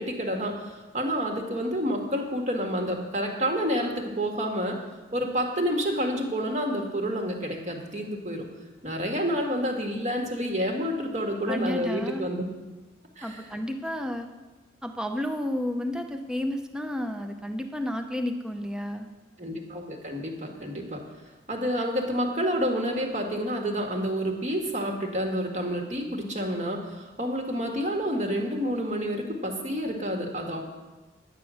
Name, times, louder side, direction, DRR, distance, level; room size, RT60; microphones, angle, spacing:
voice 1, 0.0-4.8 5.1-8.4 8.8-12.4 13.2-13.5 19.4-21.0 21.5-30.6, equal, 35° right, 2 dB, 1.7 m, -29 dB
voice 2, 11.5-12.3 13.2-14.3 14.8-19.1, left 1 dB, 5° right, 5 dB, 0.6 m, -31 dB
10.5 x 9.0 x 6.3 m, 1.2 s
head